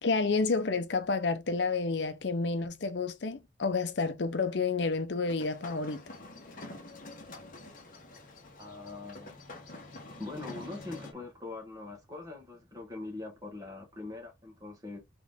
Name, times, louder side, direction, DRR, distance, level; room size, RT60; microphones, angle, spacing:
voice 1, 0.0-6.0, left 4 dB, 70° left, 0.6 m, -30 dB
sound 1, 5.2-11.1, left 2 dB, 45° left, 1.2 m, -47 dB
voice 2, 8.6-9.4 10.2-15.0, left 3 dB, 20° right, 1.7 m, -42 dB
3.9 x 3.7 x 3.5 m
head